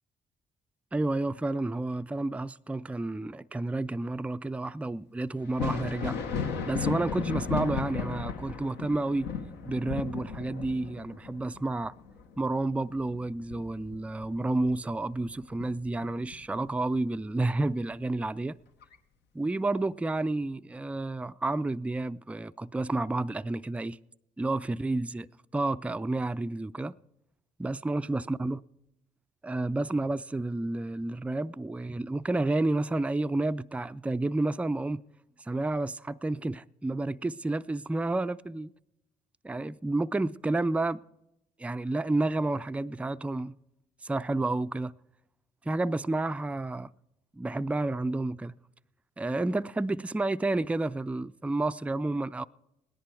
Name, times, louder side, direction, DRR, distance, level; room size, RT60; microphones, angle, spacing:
voice 1, 0.9-6.2 6.5-9.3 9.6-11.9 12.4-18.6 19.3-24.0 24.4-25.3 25.5-26.9 27.6-28.6 29.4-35.0 35.5-38.7 39.4-41.0 41.6-43.6 44.0-44.9 45.7-46.9 47.4-48.5 49.2-52.4, right 2 dB, 5° right, 0.3 m, -30 dB
Thunder, 5.4-14.8 15.1-16.4 17.9-18.0 18.8-19.0, left 5 dB, 75° left, 1.0 m, -35 dB
17.5 x 10.5 x 4.6 m
hypercardioid pair, 50°, 18 cm